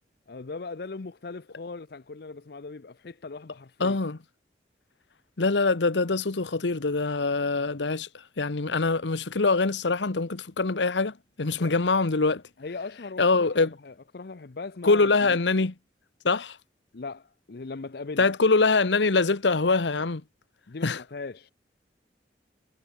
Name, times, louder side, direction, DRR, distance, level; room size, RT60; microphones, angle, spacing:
voice 1, 0.3-4.0 11.6-11.7 12.6-15.4 16.9-18.3 20.7-21.5, left 3 dB, 60° left, 0.6 m, -39 dB
voice 2, 3.8-4.2 5.4-12.4 13.2-13.7 14.8-15.7 16.2-16.6 18.2-20.2 20.8-21.0, left 3 dB, 85° left, 1.1 m, -24 dB
head